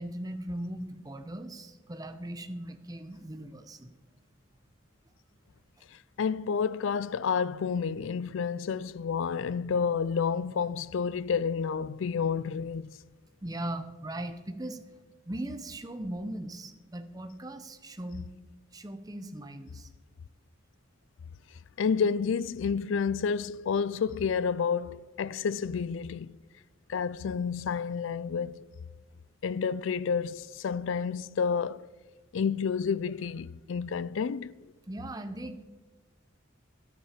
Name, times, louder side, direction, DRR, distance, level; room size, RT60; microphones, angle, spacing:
voice 1, 0.0-3.9 13.4-14.8 15.2-18.3 18.7-19.9 34.9-35.7, right 1 dB, 20° right, 0.7 m, -39 dB
voice 2, 5.9-12.9 21.8-26.4 26.9-28.6 29.4-31.9 32.3-34.5, left 6 dB, 70° left, 0.4 m, -30 dB
12.0 x 10.0 x 5.0 m
head